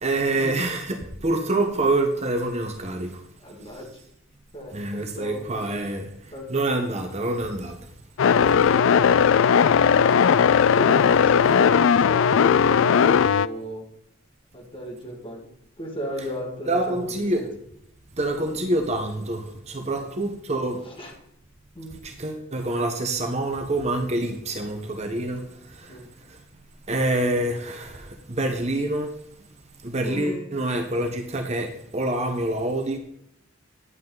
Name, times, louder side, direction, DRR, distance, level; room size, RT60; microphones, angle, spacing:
voice 1, 0.0-3.2 3.7-3.9 4.7-6.1 6.5-7.8 16.7-17.4 18.2-20.8 22.0-26.0 26.3-26.4 26.9-29.1 29.8-33.0, right 2 dB, 35° right, 1.1 m, -26 dB
voice 2, 3.4-3.9 4.5-5.5 6.3-6.5 8.2-10.2 10.8-13.8 14.5-15.5 15.8-17.5 18.4-18.6 21.0-21.1 21.8-22.0 25.9-26.1 30.0-30.4, equal, 25° left, 2.3 m, -36 dB
sound 1, 8.2-13.5, left 7 dB, 65° left, 0.3 m, -18 dB
11.0 x 8.4 x 4.0 m
head